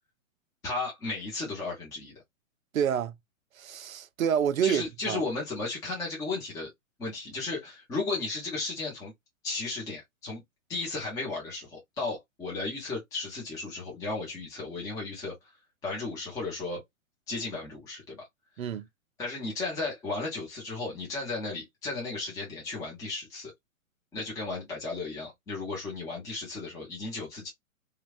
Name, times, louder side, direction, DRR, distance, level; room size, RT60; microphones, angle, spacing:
voice 1, 0.6-2.1 4.6-6.7 7.0-9.1 9.4-10.4 10.7-15.3 15.8-16.8 17.3-18.3 19.2-23.5 24.1-27.5, left 3 dB, 10° left, 0.7 m, -34 dB
voice 2, 2.7-3.2 3.6-5.2 18.6-18.9, right 8 dB, 75° right, 0.6 m, -28 dB
3.0 x 2.3 x 2.3 m
hypercardioid pair, 130°, 42 cm